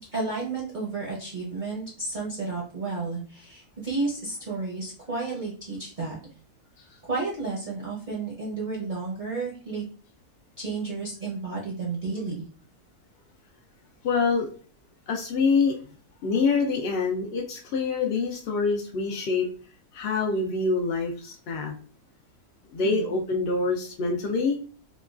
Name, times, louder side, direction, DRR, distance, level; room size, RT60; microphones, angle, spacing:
voice 1, 0.1-6.2 7.0-9.8 10.6-12.4 22.8-23.1, right 3 dB, 45° right, -5 dB, 0.6 m, -32 dB
voice 2, 14.0-14.5 15.1-15.8 16.2-19.5 19.9-21.7 22.7-24.6, left 4 dB, 80° left, 1 dB, 0.5 m, -25 dB
3.0 x 2.2 x 2.4 m, 0.41 s
omnidirectional pair, 1.6 m